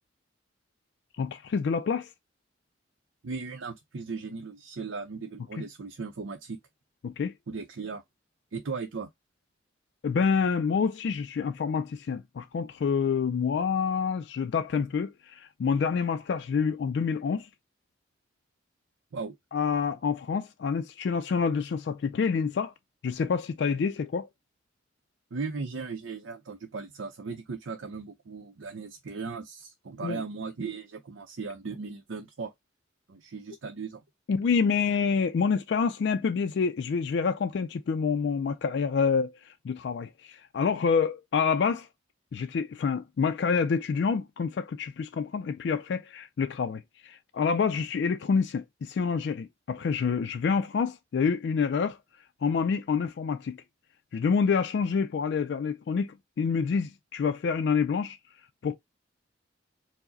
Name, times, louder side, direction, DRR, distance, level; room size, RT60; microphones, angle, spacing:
voice 1, 1.2-2.1 7.0-7.3 10.0-17.5 19.5-22.7 23.0-24.3 30.0-30.2 34.3-41.9 42.3-52.0 52.4-53.6 54.1-58.2 58.6-58.8, left 5 dB, 60° left, 0.3 m, -27 dB
voice 2, 3.2-6.6 7.5-8.0 8.5-9.1 19.1-19.4 25.3-32.5 33.1-34.0, right 4 dB, 85° right, 0.6 m, -37 dB
4.7 x 2.0 x 3.8 m
head